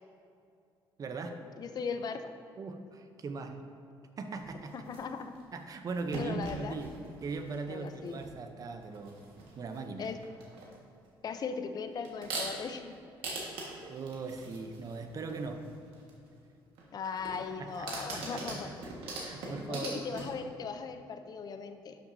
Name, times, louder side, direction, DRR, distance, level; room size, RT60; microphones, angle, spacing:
voice 1, 1.0-1.3 2.6-3.6 4.2-4.9 5.5-6.9 7.2-9.2 9.5-10.1 13.8-15.6 17.6-18.7 19.2-20.0, right 4 dB, 40° right, 6 dB, 0.7 m, -39 dB
voice 2, 1.6-2.3 4.7-5.3 6.1-6.8 7.7-8.2 10.0-10.2 11.2-13.0 16.9-18.7 19.7-22.0, left 5 dB, 45° left, 8 dB, 0.5 m, -38 dB
sound 1, 4.4-5.4 5.9-8.4 8.6-9.8 10.0-10.7 11.3-11.4 12.0-12.7 13.2-16.1 16.8-20.4, right 2 dB, 80° right, 1.5 m, -42 dB
11.5 x 5.9 x 2.7 m, 2.5 s
cardioid pair, 100°, 9 cm